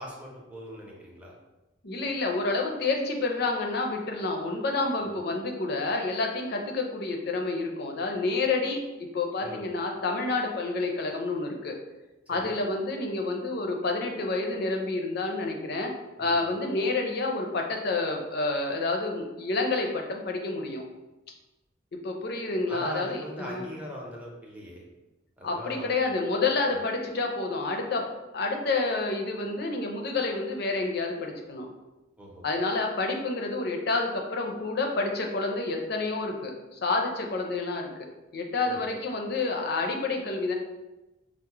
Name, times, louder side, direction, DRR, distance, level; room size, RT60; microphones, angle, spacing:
voice 1, 0.0-1.3 4.9-5.2 9.4-9.6 12.3-12.5 16.2-16.4 22.7-24.8 25.4-26.0 26.7-26.8 32.2-32.4 38.6-38.9, equal, 10° right, -3 dB, 0.6 m, -41 dB
voice 2, 1.8-8.8 9.1-11.8 12.3-15.9 16.2-20.8 22.0-23.7 25.4-31.7 32.4-37.9 38.3-40.5, left 3 dB, 60° left, 2 dB, 0.5 m, -29 dB
4.6 x 2.0 x 2.9 m, 1.0 s
head